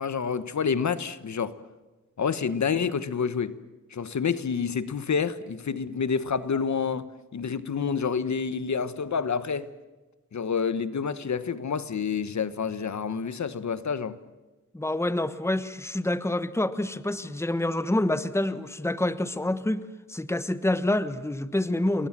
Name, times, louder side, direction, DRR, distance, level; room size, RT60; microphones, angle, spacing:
voice 1, 0.0-1.5 2.2-3.6 3.9-9.7 10.3-14.2, left 6 dB, 65° left, 1.3 m, -28 dB
voice 2, 14.7-22.1, left 1 dB, 10° left, 1.2 m, -27 dB
29.0 x 22.5 x 7.5 m
wide cardioid pair, 100°, 30 cm